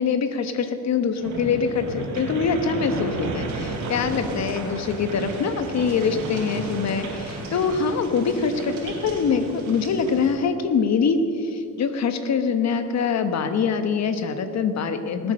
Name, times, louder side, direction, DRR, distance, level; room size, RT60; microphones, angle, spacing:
voice 1, 0.0-15.3, left 5 dB, 60° left, 8 dB, 1.3 m, -24 dB
sound 1, 1.2-10.3, right 2 dB, 85° right, 3.6 m, -32 dB
19.0 x 8.2 x 6.5 m, 2.7 s
cardioid pair, 90°, 30 cm